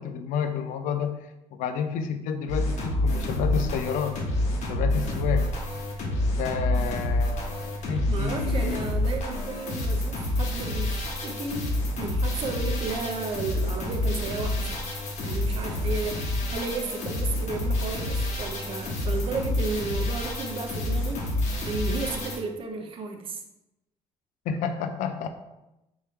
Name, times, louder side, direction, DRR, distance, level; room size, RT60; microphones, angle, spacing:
voice 1, 0.0-4.2 4.5-5.5 6.4-8.8 24.5-25.3, left 7 dB, 90° left, 7 dB, 0.4 m, -30 dB
sound 1, 2.5-22.4, left 1 dB, 70° left, 1.1 m, -28 dB
voice 2, 8.1-14.8 15.2-23.4, right 4 dB, 45° right, 4 dB, 0.6 m, -33 dB
3.6 x 3.0 x 4.4 m, 0.92 s
cardioid pair, 155°, 13 cm